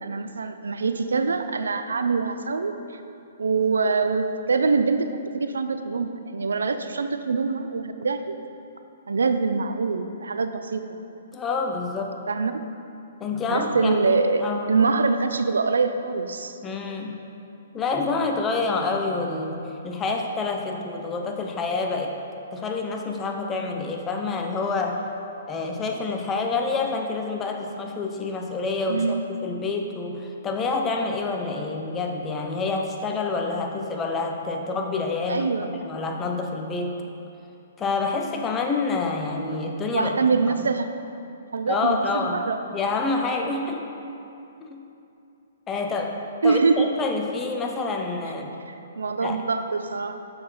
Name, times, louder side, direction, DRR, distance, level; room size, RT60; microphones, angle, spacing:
voice 1, 0.0-2.7 3.4-8.4 9.1-10.8 12.3-12.6 13.5-16.6 28.9-29.2 35.3-35.7 39.9-40.9 41.5-42.6 46.4-46.9 48.7-50.2, right 4 dB, 75° right, 8 dB, 0.5 m, -24 dB
voice 2, 11.3-12.1 13.2-14.8 16.6-17.2 17.7-22.2 22.5-25.0 25.5-35.5 35.8-37.0 37.8-40.1 40.5-40.7 41.7-42.4 42.7-43.8 44.6-44.8 45.7-48.6 49.2-49.4, left 3 dB, 20° left, 2 dB, 0.8 m, -27 dB
6.9 x 6.1 x 5.5 m, 2.7 s
figure-of-eight pair, 125°, 0 cm